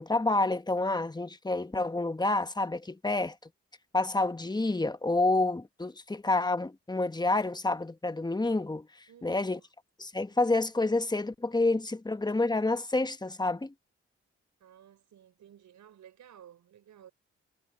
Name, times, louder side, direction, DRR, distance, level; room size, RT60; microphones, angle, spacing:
voice 1, 0.0-3.3 3.9-8.9 9.2-9.6 10.0-13.7, left 2 dB, 15° left, 1.3 m, -28 dB
voice 2, 9.1-9.7 14.6-17.1, right 10 dB, 75° right, 5.8 m, -55 dB
supercardioid pair, 45°, 29 cm